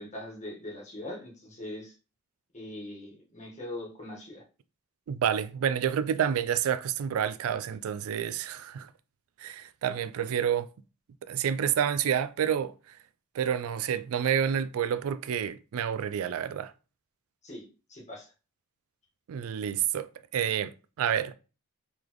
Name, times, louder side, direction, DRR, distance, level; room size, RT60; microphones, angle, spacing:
voice 1, 0.0-1.9 2.5-4.4 17.4-18.3, left 1 dB, 35° left, 1.3 m, -41 dB
voice 2, 5.1-8.9 9.4-10.7 11.3-12.7 13.3-16.7 19.3-21.4, right 8 dB, 70° right, 0.3 m, -29 dB
3.9 x 3.4 x 3.0 m
head